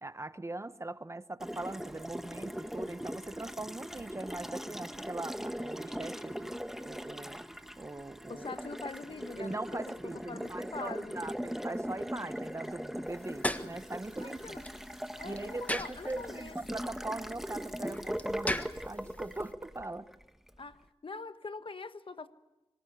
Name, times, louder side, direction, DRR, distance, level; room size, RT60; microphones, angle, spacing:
voice 1, 0.0-6.5 6.8-7.4 7.8-8.5 9.4-14.6 15.2-20.1, right 2 dB, 25° right, 0.9 m, -41 dB
Water tap faucet, 1.4-20.6, equal, 5° right, 1.3 m, -40 dB
voice 2, 8.3-9.9 10.3-11.2 14.2-14.6 15.2-16.6 20.6-22.3, left 4 dB, 55° left, 1.3 m, -44 dB
sound 1, 13.1-19.5, left 1 dB, 15° left, 1.5 m, -40 dB
26.0 x 16.0 x 9.7 m
wide cardioid pair, 60°, 10 cm